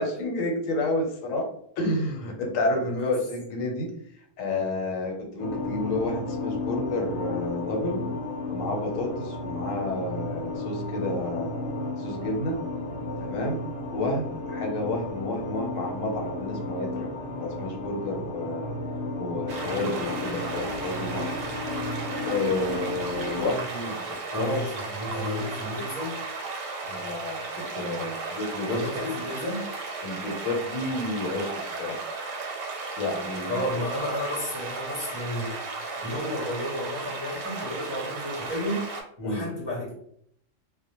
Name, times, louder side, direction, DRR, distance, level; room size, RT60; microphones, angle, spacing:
voice 1, 0.0-8.0 8.5-12.6 13.2-13.6 13.9-17.1 17.4-18.7 19.2-21.3 22.2-24.7 26.8-28.8 30.0-32.0 33.0-33.6 39.2-39.4, left 2 dB, 90° left, 1 dB, 1.0 m, -30 dB
voice 2, 2.7-3.2 24.3-26.2 28.7-29.6 33.5-35.6 36.0-38.9 39.2-39.9, left 1 dB, 35° right, -7 dB, 0.4 m, -32 dB
sound 1, 5.4-23.5, left 2 dB, 70° left, 0.8 m, -33 dB
sound 2, 19.5-39.0, right 3 dB, 90° right, 1.0 m, -35 dB
2.1 x 2.1 x 2.8 m, 0.66 s
omnidirectional pair, 1.3 m